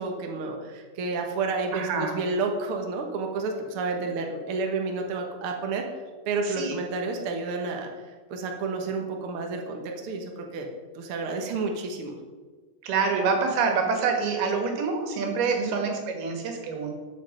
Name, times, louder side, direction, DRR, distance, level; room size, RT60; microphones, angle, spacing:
voice 1, 0.0-5.9 6.2-7.9 8.3-10.7 10.9-12.2 15.6-15.7, right 3 dB, 65° right, 2 dB, 1.3 m, -30 dB
voice 2, 1.7-2.2 6.4-6.8 12.8-16.9, right 5 dB, 85° right, 3 dB, 3.7 m, -26 dB
13.0 x 7.6 x 5.3 m, 1.4 s
omnidirectional pair, 4.3 m